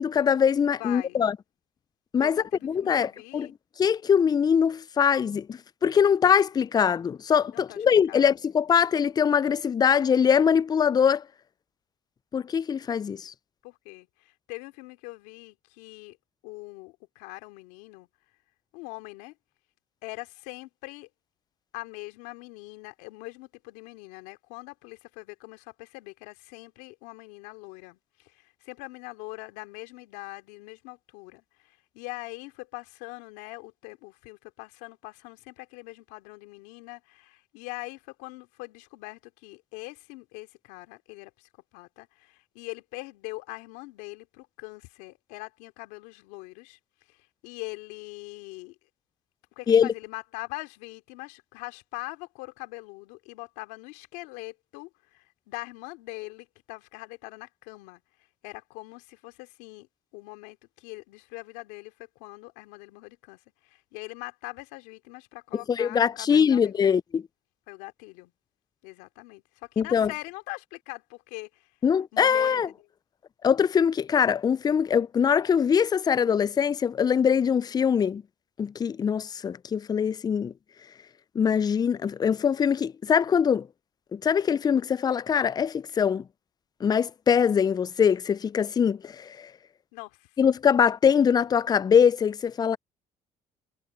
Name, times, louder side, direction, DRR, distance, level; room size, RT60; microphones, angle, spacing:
voice 1, 0.0-1.4 2.1-3.5 3.8-11.2 12.3-13.3 49.7-49.9 65.7-67.2 69.8-70.1 71.8-72.7 73.4-78.2 78.6-80.5 81.4-83.7 84.1-86.2 86.8-89.5 90.4-92.8, left 7 dB, 25° left, 0.3 m, -23 dB
voice 2, 0.8-1.2 2.2-2.7 2.9-3.5 7.5-8.3 13.6-16.2 16.4-18.1 18.7-19.4 20.0-21.1 21.7-46.8 47.1-48.8 49.6-58.0 58.4-59.9 60.1-66.8 67.7-68.3 68.8-71.7 72.1-72.9 89.9-90.3, left 23 dB, 85° left, 2.7 m, -42 dB
supercardioid pair, 70°, 16 cm